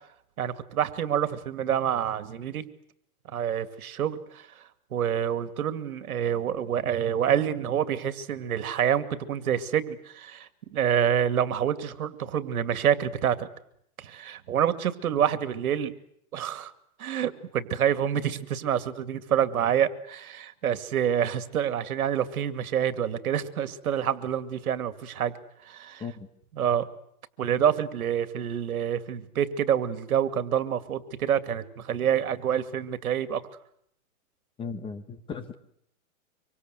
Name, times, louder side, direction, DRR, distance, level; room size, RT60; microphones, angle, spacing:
voice 1, 0.4-2.6 3.3-4.6 4.9-13.5 14.0-15.9 16.3-16.7 17.0-25.3 25.7-26.0 26.6-26.9 27.4-33.4, right 9 dB, 75° right, 11 dB, 2.5 m, -27 dB
voice 2, 34.6-35.5, left 5 dB, 10° left, 9 dB, 1.1 m, -36 dB
25.5 x 24.5 x 8.1 m, 0.72 s
hypercardioid pair, 155°, 43 cm